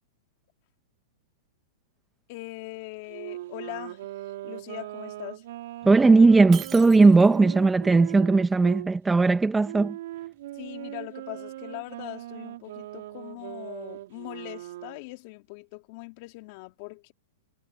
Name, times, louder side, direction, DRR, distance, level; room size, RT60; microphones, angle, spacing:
voice 1, 2.3-4.0 4.4-5.4 10.5-17.1, left 24 dB, 45° left, 3.5 m, -41 dB
Wind instrument woodwind instrument, 3.1-8.9 9.6-15.0, right 15 dB, 65° right, 5.9 m, -40 dB
voice 2, 5.8-10.0, right 3 dB, 10° right, 1.5 m, -18 dB
Shatter, 6.5-7.5, right 11 dB, 25° right, 2.8 m, -42 dB
hypercardioid pair, 140°, 0 cm